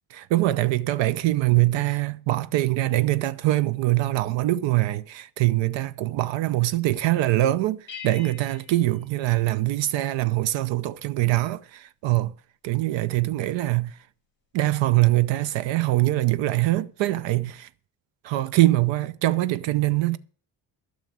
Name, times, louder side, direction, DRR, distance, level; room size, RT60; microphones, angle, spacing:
voice 1, 0.1-12.3 12.6-14.0 14.5-17.7 18.2-20.2, right 16 dB, 85° right, 0.8 m, -23 dB
sound 1, 7.9-10.1, left 7 dB, 25° left, 2.7 m, -45 dB
13.0 x 6.6 x 8.7 m
cardioid pair, 150°, 43 cm